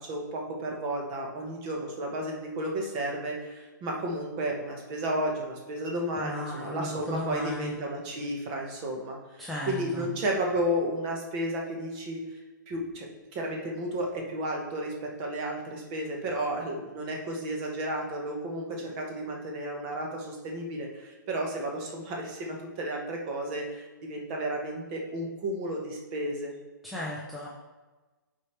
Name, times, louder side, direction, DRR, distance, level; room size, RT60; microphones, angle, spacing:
voice 1, 0.0-12.2 12.7-13.1 13.3-26.5, right 1 dB, 25° right, 0 dB, 1.1 m, -32 dB
voice 2, 6.2-7.8 9.4-10.1 26.8-27.5, equal, ahead, -5 dB, 0.5 m, -35 dB
9.1 x 4.6 x 3.2 m, 1.2 s
hypercardioid pair, 160°, 11 cm